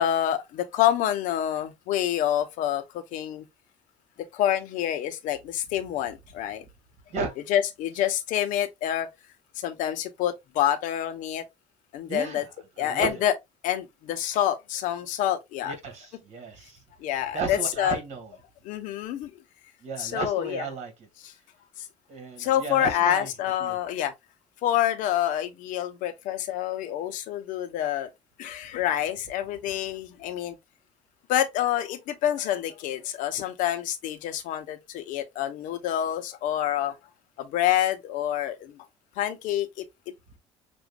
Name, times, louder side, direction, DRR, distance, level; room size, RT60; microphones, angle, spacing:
voice 1, 0.0-3.4 4.3-6.6 7.5-9.1 9.6-11.4 11.9-12.4 12.8-13.3 13.6-15.7 17.0-18.0 18.6-19.3 20.0-20.6 22.4-24.1 24.6-28.1 28.4-30.6 31.3-36.9 37.4-38.8 39.2-39.8, left 11 dB, 80° left, 1.0 m, -27 dB
voice 2, 12.1-13.2 15.6-16.8 17.3-18.3 19.8-21.1 22.1-23.3 23.6-23.8, right 4 dB, 55° right, 2.2 m, -34 dB
6.2 x 2.6 x 2.3 m
cardioid pair, 110°, 13 cm